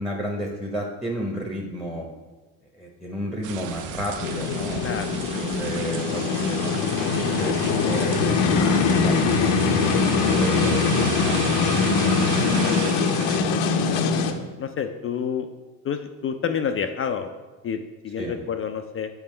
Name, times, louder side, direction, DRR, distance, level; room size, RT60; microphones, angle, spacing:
voice 1, 0.0-2.1 2.8-4.9 5.4-7.6 7.8-9.3 9.6-11.4 18.2-18.4, equal, ahead, 0 dB, 0.8 m, -32 dB
sound 1, 3.4-13.4, right 8 dB, 40° right, 0.6 m, -34 dB
sound 2, 4.2-14.3, left 5 dB, 60° left, 0.7 m, -22 dB
voice 2, 13.4-15.5 15.8-17.3 17.6-19.1, left 7 dB, 30° left, 7 dB, 0.4 m, -29 dB
6.9 x 4.9 x 3.2 m, 1.3 s
hypercardioid pair, 65°, 48 cm